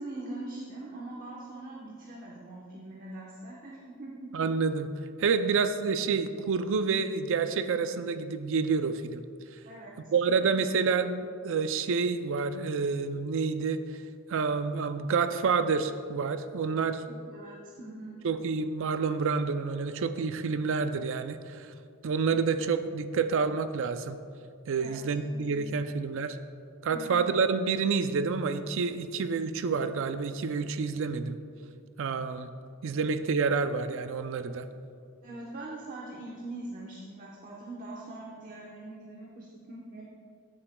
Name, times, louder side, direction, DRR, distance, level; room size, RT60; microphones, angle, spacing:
voice 1, 0.0-4.3 9.6-10.0 10.4-10.5 17.1-18.2 24.8-25.9 26.9-27.3 35.2-40.0, right 2 dB, 40° right, -4 dB, 1.0 m, -42 dB
voice 2, 4.3-4.9 5.2-9.2 10.1-13.8 14.3-17.0 18.2-21.7 22.0-24.2 24.7-26.4 26.8-31.4 32.0-32.5 32.8-34.7, right 5 dB, 60° right, 10 dB, 0.4 m, -28 dB
14.0 x 7.6 x 2.2 m, 2.2 s
head